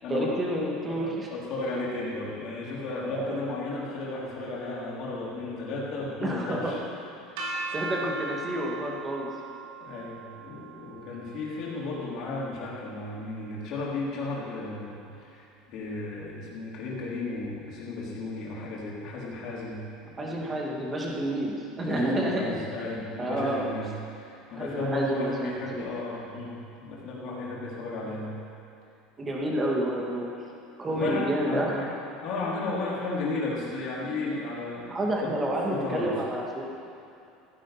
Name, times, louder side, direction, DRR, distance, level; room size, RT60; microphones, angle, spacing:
voice 1, 0.1-1.3 3.0-3.4 6.2-6.7 7.7-9.3 20.2-22.6 23.2-23.7 24.6-25.9 29.2-30.3 30.8-31.9 34.9-36.6, right 1 dB, 20° right, -2 dB, 2.2 m, -29 dB
voice 2, 0.9-6.8 9.8-20.4 21.7-28.3 30.9-31.9 32.2-34.9 35.2-35.3 35.7-36.1, left 2 dB, 50° left, -5 dB, 3.8 m, -34 dB
sound 1, 7.4-13.3, right 3 dB, 80° right, 3.1 m, -39 dB
15.0 x 10.5 x 5.9 m, 2.7 s
cardioid pair, 145°, 0 cm